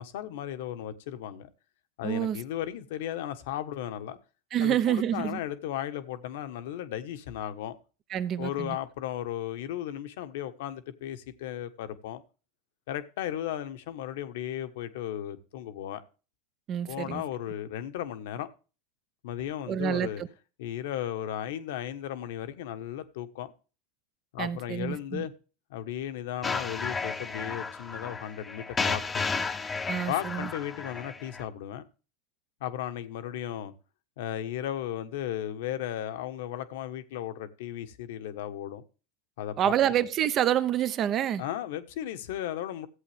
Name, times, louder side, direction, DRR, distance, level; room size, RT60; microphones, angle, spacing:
voice 1, 0.0-1.5 2.0-4.2 4.6-7.8 8.4-12.2 12.9-16.0 16.9-18.5 19.2-20.2 20.6-23.5 24.3-25.3 25.7-29.0 30.1-31.8 32.6-33.7 34.2-38.8 39.4-39.7 41.4-42.9, left 11 dB, 70° left, 1.2 m, -35 dB
voice 2, 2.0-2.4 4.5-5.4 8.1-8.8 16.7-17.2 19.7-20.3 24.4-25.3 29.9-30.5 39.6-41.4, right 10 dB, 40° right, 0.9 m, -27 dB
sound 1, 26.4-31.4, left 4 dB, 20° left, 0.9 m, -33 dB
14.5 x 8.3 x 3.4 m
hypercardioid pair, 100°, 0 cm